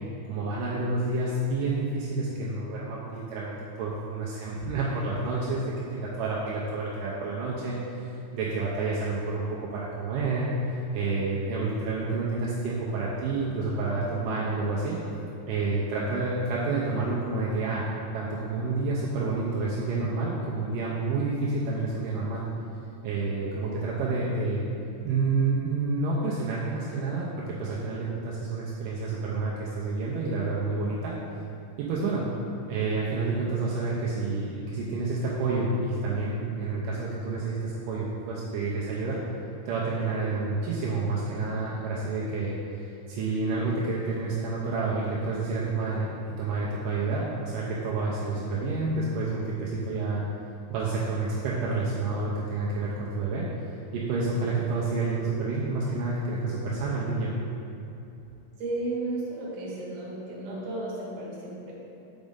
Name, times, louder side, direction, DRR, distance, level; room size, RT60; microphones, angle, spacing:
voice 1, 0.3-10.5 10.7-15.0 15.5-17.8 18.1-22.4 23.0-24.7 25.0-31.2 31.8-32.3 32.7-39.2 39.7-46.1 46.4-50.3 50.7-53.5 53.9-57.3, right 3 dB, 80° right, -6 dB, 2.1 m, -29 dB
voice 2, 58.6-61.7, right 2 dB, 65° right, -5 dB, 2.4 m, -34 dB
6.3 x 5.1 x 3.6 m, 2.9 s
omnidirectional pair, 4.0 m